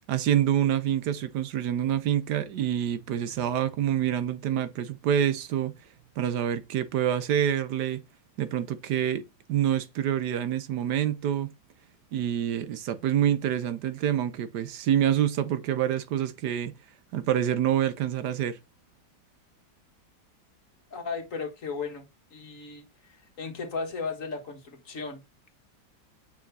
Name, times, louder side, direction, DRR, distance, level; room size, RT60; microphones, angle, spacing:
voice 1, 0.1-5.7 6.2-8.0 8.4-9.2 9.5-11.5 12.1-16.7 17.1-18.6, right 10 dB, 65° right, 1.2 m, -26 dB
voice 2, 20.9-25.2, left 4 dB, 45° left, 2.0 m, -36 dB
8.9 x 5.8 x 2.7 m
omnidirectional pair, 2.0 m